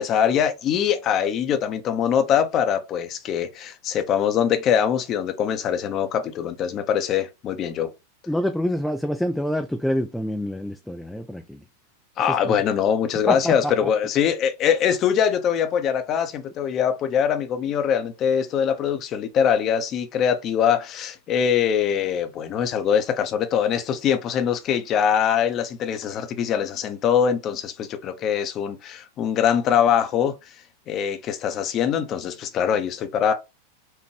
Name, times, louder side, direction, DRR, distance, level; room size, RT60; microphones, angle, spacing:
voice 1, 0.0-7.9 12.2-30.3 30.9-33.3, left 8 dB, 35° left, 0.8 m, -23 dB
voice 2, 8.3-11.6 12.4-12.5 13.3-13.9, equal, 5° left, 0.4 m, -26 dB
4.5 x 2.6 x 3.2 m
figure-of-eight pair, 90°, 0 cm